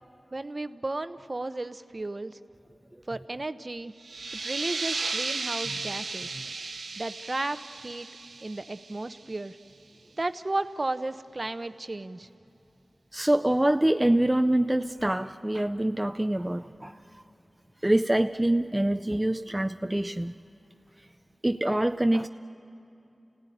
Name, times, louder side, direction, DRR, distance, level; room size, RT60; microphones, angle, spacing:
voice 1, 0.3-2.4 3.1-3.9 4.3-6.3 7.0-7.6 7.8-8.1 8.4-9.6 10.2-12.3, right 2 dB, 45° right, 11 dB, 0.8 m, -34 dB
sound 1, 4.0-9.4, right 4 dB, 90° right, 0.9 m, -35 dB
voice 2, 13.1-17.2 17.8-20.3 21.4-22.3, right 1 dB, 20° right, 8 dB, 0.5 m, -25 dB
29.0 x 16.5 x 9.9 m, 2.7 s
cardioid pair, 45°, 0 cm